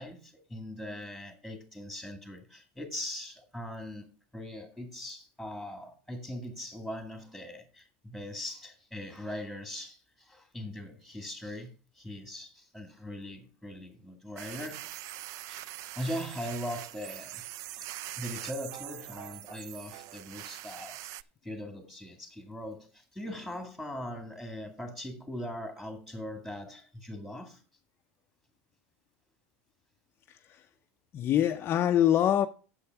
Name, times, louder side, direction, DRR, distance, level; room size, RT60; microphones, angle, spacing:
voice 1, 0.0-4.1 4.3-14.8 15.5-15.7 16.0-17.5 17.7-17.9 18.2-21.1 21.4-27.6, left 1 dB, ahead, 2.1 m, -40 dB
sound 1, 14.4-21.2, right 15 dB, 50° right, 0.4 m, -43 dB
voice 2, 30.3-30.7 31.1-32.5, left 11 dB, 35° left, 0.5 m, -25 dB
8.5 x 7.1 x 4.6 m
supercardioid pair, 125°, 7 cm